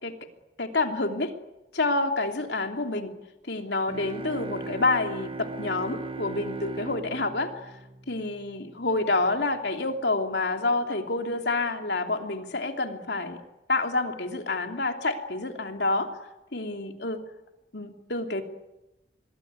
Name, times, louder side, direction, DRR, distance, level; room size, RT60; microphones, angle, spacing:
voice 1, 0.6-1.3 1.7-3.1 3.5-7.7 8.1-13.4 13.7-16.1 16.5-17.2 17.7-18.4, left 2 dB, 75° left, 4 dB, 3.0 m, -28 dB
sound 1, 3.9-8.6, right 3 dB, 30° right, 1.1 m, -38 dB
26.0 x 22.0 x 9.5 m, 1.0 s
head